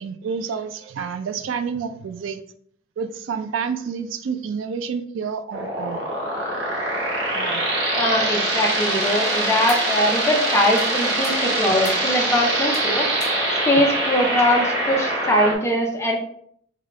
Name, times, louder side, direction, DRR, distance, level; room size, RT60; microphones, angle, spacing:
voice 1, 0.0-2.4 3.0-6.0 7.3-7.7, right 6 dB, 85° right, 10 dB, 0.3 m, -29 dB
sound 1, 5.5-15.5, right 1 dB, 60° right, 0.8 m, -23 dB
voice 2, 7.7-13.1 13.7-16.2, left 1 dB, 15° left, 0 dB, 0.5 m, -21 dB
sound 2, 9.3-10.0 10.8-12.2 12.7-13.8, left 3 dB, 35° left, 0.9 m, -39 dB
3.4 x 2.3 x 3.5 m, 0.64 s
head